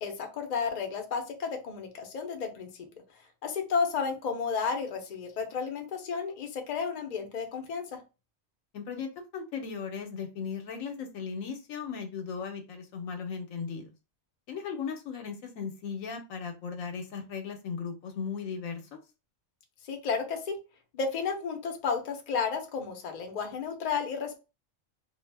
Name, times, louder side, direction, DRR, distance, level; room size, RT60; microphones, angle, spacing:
voice 1, 0.0-2.7 3.4-8.0 19.8-20.6 20.9-24.4, left 5 dB, 50° left, 4 dB, 0.5 m, -32 dB
voice 2, 8.7-13.9 14.5-19.0, left 6 dB, 85° left, 5 dB, 1.0 m, -37 dB
2.4 x 2.0 x 3.2 m, 0.30 s
omnidirectional pair, 1.4 m